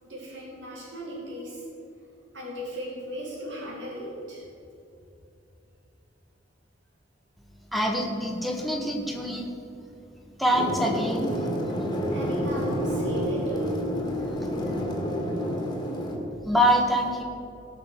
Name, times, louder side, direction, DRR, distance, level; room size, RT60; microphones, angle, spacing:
voice 1, 0.0-1.6 2.3-4.5 12.1-13.8, right 1 dB, 70° right, -3 dB, 2.5 m, -37 dB
voice 2, 7.7-9.5 10.4-11.3 16.4-17.2, equal, ahead, 0 dB, 1.5 m, -24 dB
sound 1, 10.5-16.2, equal, 20° left, 2.1 m, -29 dB
17.5 x 6.8 x 6.4 m, 2.7 s
head